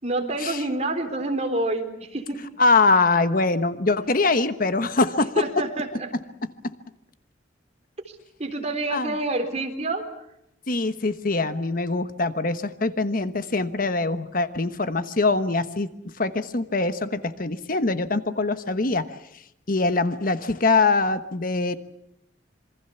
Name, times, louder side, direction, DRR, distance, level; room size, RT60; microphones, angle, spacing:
voice 1, 0.0-2.4 5.4-6.1 8.4-10.1, right 2 dB, 35° right, 6 dB, 3.9 m, -27 dB
voice 2, 2.6-5.3 8.9-9.1 10.7-19.0 19.7-21.8, left 3 dB, 50° left, 11 dB, 1.2 m, -23 dB
27.0 x 24.0 x 7.0 m, 0.78 s
head